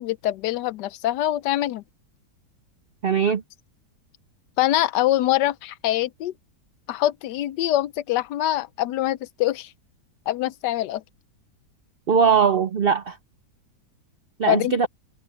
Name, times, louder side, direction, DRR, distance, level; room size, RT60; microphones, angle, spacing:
voice 1, 0.0-1.8 4.6-6.3 6.9-9.7 10.3-11.0 14.4-14.9, left 14 dB, 80° left, 1.2 m, -24 dB
voice 2, 3.0-3.4 12.1-13.2 14.4-14.9, right 6 dB, 70° right, 0.5 m, -20 dB
omnidirectional pair, 1.9 m